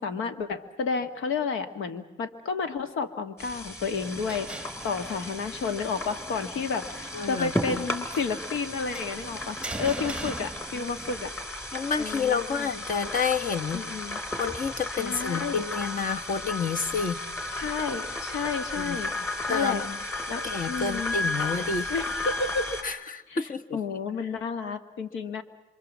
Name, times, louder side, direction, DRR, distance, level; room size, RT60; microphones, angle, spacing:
voice 1, 0.0-11.3 12.0-12.7 13.7-14.2 14.9-15.6 17.5-19.1 19.5-19.8 20.3-21.1 21.9-22.8 23.3-25.4, left 5 dB, 80° left, 9 dB, 1.8 m, -31 dB
sound 1, 3.4-22.8, left 2 dB, 10° left, 4.2 m, -34 dB
sound 2, 3.9-11.2, right 2 dB, 5° right, 1.0 m, -42 dB
voice 2, 7.1-7.8 10.7-10.9 11.7-13.8 14.4-17.2 18.8-19.0 19.5-20.0 20.4-21.9 22.8-23.6, left 5 dB, 45° left, 8 dB, 1.3 m, -29 dB
26.5 x 24.0 x 7.4 m, 1.0 s
cardioid pair, 90°, 20 cm